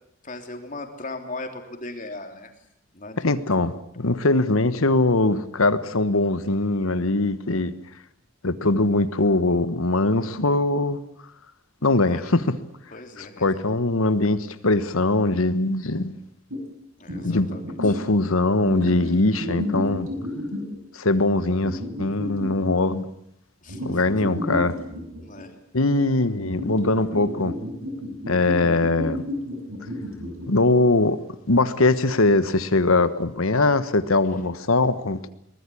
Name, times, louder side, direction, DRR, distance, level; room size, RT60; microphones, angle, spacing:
voice 1, 0.2-2.5 2.9-3.4 11.8-12.3 12.9-13.6 17.0-18.0 23.6-24.0 25.2-25.5, left 2 dB, 40° left, 4 dB, 3.3 m, -38 dB
voice 2, 3.2-7.7 8.4-11.0 11.8-12.6 13.2-16.2 17.2-17.5 17.8-20.1 20.9-23.1 23.8-24.8 25.7-27.5 28.3-29.2 30.5-31.2 31.5-35.3, left 2 dB, 90° left, 13 dB, 1.4 m, -21 dB
sound 1, 16.5-16.6 17.1-18.0 18.6-20.8 21.6-22.7 23.7-25.4 26.5-30.5, left 1 dB, 85° right, 5.6 m, -32 dB
23.0 x 20.0 x 8.6 m, 0.75 s
head